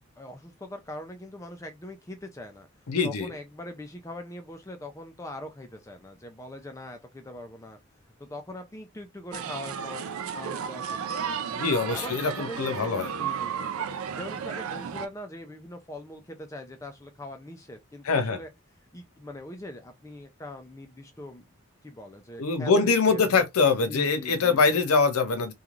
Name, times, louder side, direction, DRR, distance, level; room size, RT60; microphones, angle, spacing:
voice 1, 0.2-2.7 3.0-7.8 8.2-10.0 10.3-11.0 11.9-18.5 18.9-21.4 21.8-23.4 23.9-24.8, left 1 dB, 15° left, 0.4 m, -42 dB
voice 2, 2.9-3.3 11.5-13.1 18.0-18.4 22.4-25.5, left 4 dB, 80° left, 0.6 m, -23 dB
sound 1, 9.3-15.1, right 7 dB, 75° right, 0.4 m, -33 dB
3.0 x 2.3 x 2.4 m
head